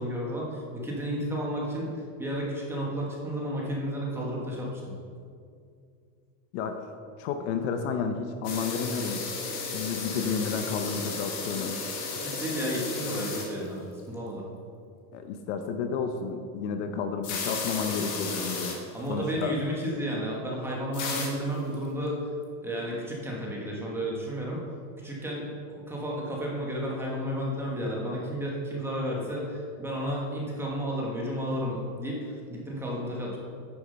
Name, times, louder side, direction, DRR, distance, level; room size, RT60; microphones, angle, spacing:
voice 1, 0.0-1.9 2.2-4.9 12.1-13.8 14.1-14.4 18.9-22.2 22.6-24.6 25.0-33.4, equal, 5° right, -4 dB, 1.1 m, -32 dB
voice 2, 7.2-9.2 9.7-11.8 15.1-18.8 19.1-19.5, left 6 dB, 55° left, 7 dB, 0.7 m, -31 dB
sound 1, 8.4-13.7 14.0-14.1 17.2-18.8 19.1-19.2 19.4-19.5 20.9-21.3 21.7-21.8, left 4 dB, 35° left, 1.6 m, -34 dB
9.5 x 7.0 x 5.3 m, 2.3 s
cardioid pair, 175°, 43 cm